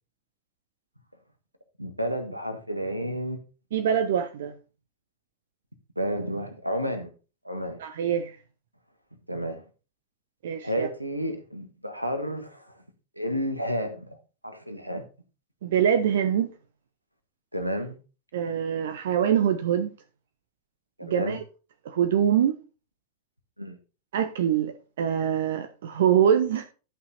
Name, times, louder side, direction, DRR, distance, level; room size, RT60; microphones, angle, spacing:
voice 1, 1.8-3.4 6.0-7.1 7.4-7.8 9.3-9.6 10.6-12.7 13.2-14.2 14.4-15.0 17.5-18.0 21.0-21.4 23.6-23.8, equal, 90° right, 1.5 m, -31 dB
voice 2, 3.7-4.5 7.8-8.4 10.4-10.9 15.6-16.5 18.3-19.9 21.0-21.4 21.8-22.5 24.1-26.6, right 9 dB, 60° right, 0.7 m, -24 dB
11.0 x 5.7 x 4.1 m
figure-of-eight pair, 90°, 0 cm